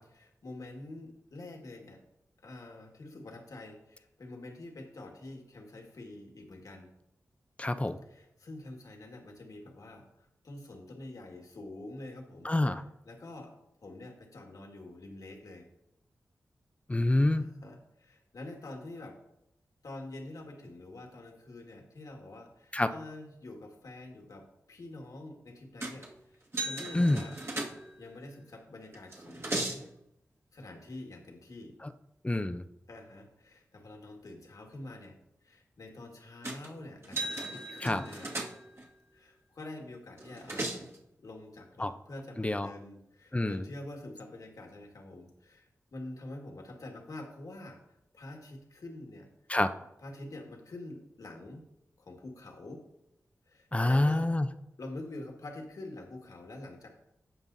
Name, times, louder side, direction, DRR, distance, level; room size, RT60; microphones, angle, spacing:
voice 1, 0.1-2.0 2.4-6.9 8.0-12.5 13.1-13.5 13.8-15.7 17.3-19.2 19.8-27.4 28.0-29.8 30.5-31.7 32.9-35.2 35.4-38.3 39.1-40.8 41.2-47.8 48.1-49.3 50.0-51.7 52.0-52.8 53.5-54.3 54.8-56.9, left 2 dB, 70° left, 1 dB, 1.9 m, -46 dB
voice 2, 7.6-8.0 12.4-12.8 16.9-17.5 22.7-22.9 26.9-27.2 32.2-32.6 37.8-38.0 41.8-41.9 42.4-42.7 43.3-43.6 49.5-49.7 53.7-54.5, left 1 dB, 20° left, 10 dB, 0.6 m, -27 dB
sound 1, 25.8-26.1 26.5-28.1 28.9-29.9 36.4-36.7 37.0-38.9 40.2-41.0, right 2 dB, 45° right, 2.0 m, -37 dB
16.5 x 5.5 x 2.7 m, 0.83 s
cardioid pair, 55°, 6 cm